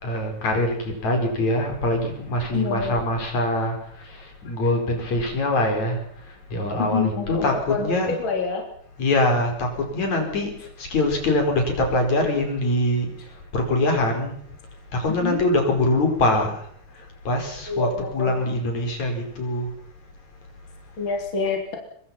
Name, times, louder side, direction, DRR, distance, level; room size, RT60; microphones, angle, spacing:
voice 1, 0.0-6.0 6.5-8.2 9.0-10.5 10.8-13.1 13.5-14.4 14.9-16.5 17.3-19.7, left 1 dB, 65° left, 3 dB, 6.2 m, -23 dB
voice 2, 2.5-3.0 6.8-8.6 10.2-10.6 15.2-15.4 17.7-18.3 21.0-21.8, left 5 dB, 40° left, 3 dB, 4.0 m, -27 dB
25.0 x 23.5 x 5.8 m, 0.62 s
omnidirectional pair, 3.5 m